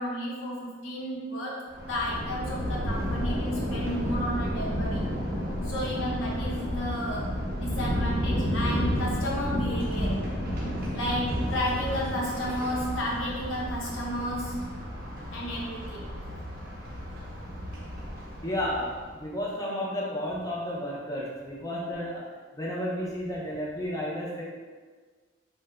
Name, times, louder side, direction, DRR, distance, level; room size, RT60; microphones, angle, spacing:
voice 1, 0.0-5.1 5.6-7.3 7.6-10.2 10.9-14.6 15.3-16.1, equal, 90° left, -4 dB, 0.8 m, -32 dB
Thunder, 1.7-19.1, equal, 50° right, 0.5 m, -31 dB
voice 2, 18.4-22.2 22.5-24.4, equal, 20° left, -4 dB, 0.5 m, -32 dB
2.8 x 2.1 x 3.4 m, 1.4 s
head